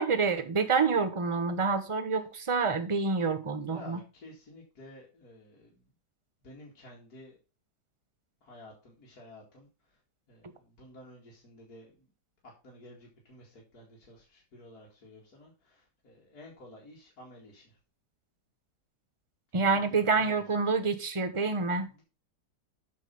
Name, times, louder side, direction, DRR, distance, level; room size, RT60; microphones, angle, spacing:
voice 1, 0.0-4.0 19.5-21.9, right 4 dB, 20° right, 9 dB, 0.9 m, -27 dB
voice 2, 3.6-5.9 6.4-7.4 8.4-10.0 10.3-12.1 12.4-17.8 19.9-20.4 21.6-22.0, left 1 dB, 55° left, -3 dB, 2.8 m, -52 dB
9.0 x 5.8 x 5.3 m, 0.31 s
omnidirectional pair, 1.9 m